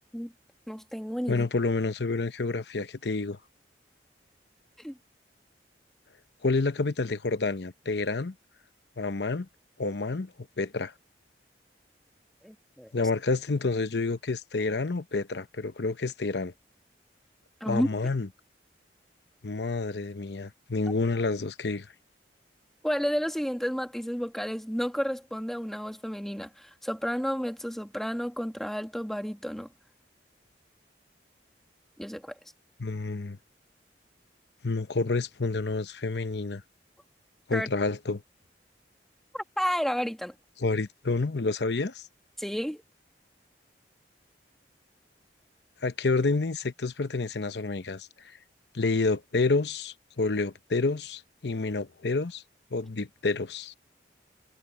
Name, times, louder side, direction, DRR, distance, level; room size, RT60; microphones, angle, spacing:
voice 1, 0.7-1.5 4.8-5.0 12.4-12.9 17.6-17.9 22.8-29.7 32.0-32.3 37.5-37.7 39.3-40.3 42.4-42.8, equal, ahead, 1.7 m, -31 dB
voice 2, 1.3-3.4 6.4-8.3 9.0-9.5 9.8-10.3 10.6-10.9 12.9-16.5 17.7-18.3 19.4-21.9 32.8-33.4 34.6-36.6 37.5-38.2 40.6-42.0 45.8-48.1 48.7-52.4 52.7-53.7, left 3 dB, 70° left, 0.9 m, -29 dB
head